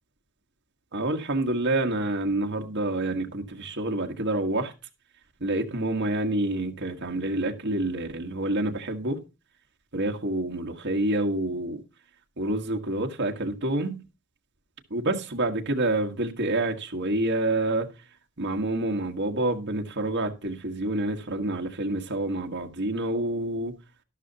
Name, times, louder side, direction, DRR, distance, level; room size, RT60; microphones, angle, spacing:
voice 1, 0.9-4.7 5.4-9.2 9.9-11.8 12.4-14.0 14.9-17.9 18.4-23.7, right 2 dB, 55° right, 1.6 m, -28 dB
13.0 x 12.0 x 2.9 m
head